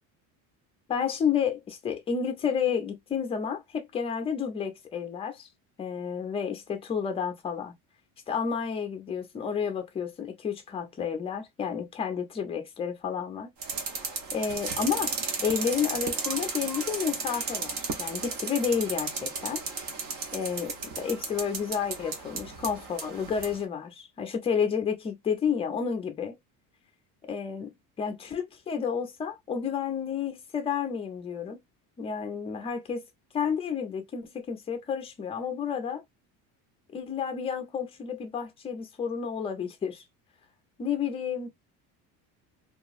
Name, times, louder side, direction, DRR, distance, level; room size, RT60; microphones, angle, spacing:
voice 1, 0.9-5.5 5.8-7.7 8.3-13.5 14.3-15.1 15.4-19.6 20.3-26.3 27.2-31.6 32.0-33.0 33.3-36.0 36.9-40.0 40.8-41.5, left 7 dB, 15° left, 0.4 m, -31 dB
sound 1, 13.6-23.6, right 4 dB, 50° right, 0.9 m, -34 dB
2.9 x 2.4 x 2.4 m
cardioid pair, 175°, 37 cm